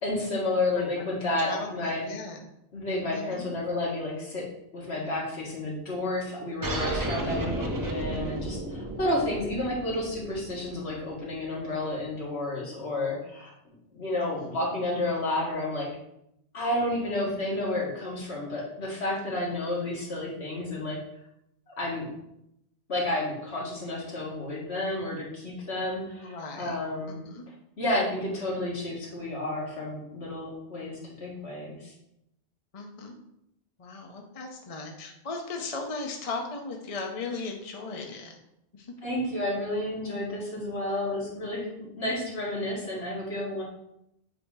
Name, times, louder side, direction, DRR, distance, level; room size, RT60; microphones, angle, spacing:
voice 1, 0.0-2.1 2.7-4.4 4.7-13.5 13.9-15.9 16.5-21.0 21.7-22.1 22.9-27.2 27.8-31.9 39.0-43.6, left 1 dB, 75° left, -4 dB, 1.9 m, -31 dB
voice 2, 1.4-2.4 3.1-3.5 14.2-14.6 26.2-26.8 27.1-27.5 32.7-33.2 33.8-38.4 38.7-38.9, left 3 dB, 35° left, 2 dB, 0.7 m, -37 dB
sound 1, 6.6-11.7, right 1 dB, 25° right, 0.6 m, -33 dB
7.7 x 2.8 x 4.7 m, 0.80 s
omnidirectional pair, 1.1 m